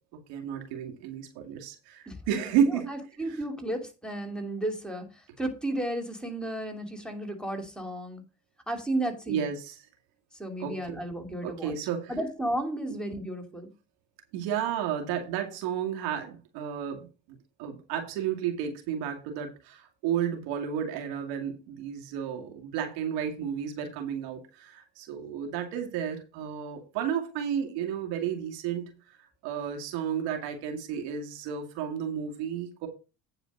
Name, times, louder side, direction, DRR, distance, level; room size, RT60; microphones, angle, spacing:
voice 1, 0.3-2.9 3.2-3.4 9.3-9.8 10.6-11.0 11.4-12.2 14.3-29.2 29.4-32.9, right 8 dB, 75° right, 4 dB, 2.4 m, -32 dB
voice 2, 2.1-2.4 2.9-5.0 5.4-8.2 8.7-9.4 10.4-11.7 12.1-13.7, right 1 dB, ahead, 5 dB, 2.8 m, -33 dB
9.1 x 4.8 x 6.5 m, 0.32 s
supercardioid pair, 75°, 38 cm